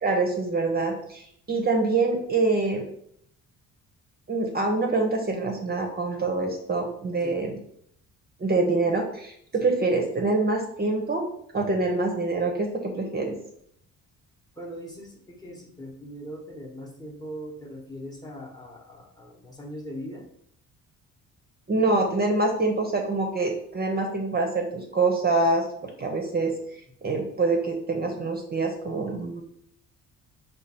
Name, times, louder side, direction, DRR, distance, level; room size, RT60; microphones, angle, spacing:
voice 1, 0.0-2.8 4.3-7.5 8.4-11.3 11.5-13.4 21.7-29.4, right 3 dB, 30° right, 2 dB, 0.7 m, -25 dB
voice 2, 14.5-20.3, equal, 10° left, 1 dB, 0.9 m, -40 dB
4.9 x 2.4 x 4.2 m, 0.70 s
cardioid pair, 110°, 33 cm